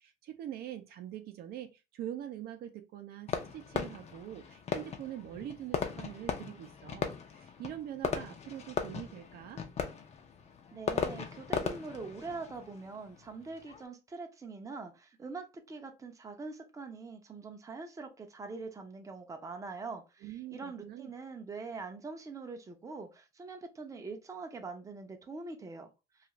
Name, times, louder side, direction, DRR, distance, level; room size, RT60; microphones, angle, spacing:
voice 1, 0.0-9.6 20.2-21.1, right 11 dB, 70° right, 0.5 m, -44 dB
Fireworks, 3.3-13.8, left 6 dB, 40° left, 0.5 m, -38 dB
voice 2, 10.7-25.9, right 4 dB, 20° right, 0.5 m, -43 dB
2.4 x 2.4 x 3.0 m
cardioid pair, 110°, 17 cm